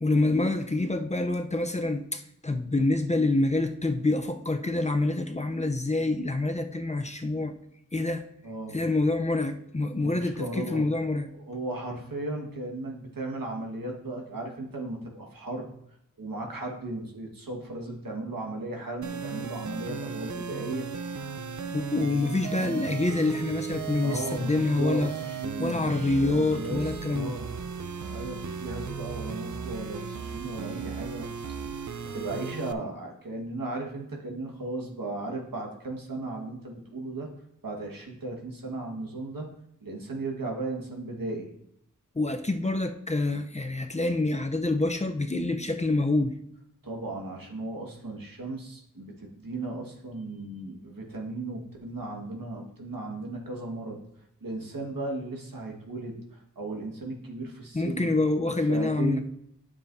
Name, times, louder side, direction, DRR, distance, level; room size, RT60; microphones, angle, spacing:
voice 1, 0.0-7.5 7.9-8.2 8.7-11.3 21.7-25.1 25.6-27.3 42.2-46.3 57.7-59.2, left 2 dB, 20° left, 6 dB, 0.6 m, -26 dB
voice 2, 8.4-8.8 10.0-10.9 11.3-15.7 16.2-20.9 24.0-27.5 28.1-31.3 32.1-37.3 37.6-39.5 39.8-41.5 46.8-54.0 54.4-58.1 58.7-59.2, right 2 dB, 80° right, 0 dB, 1.6 m, -36 dB
sound 1, 19.0-32.7, right 6 dB, 60° right, 0.6 m, -36 dB
9.7 x 7.0 x 2.6 m, 0.76 s
wide cardioid pair, 50°, 33 cm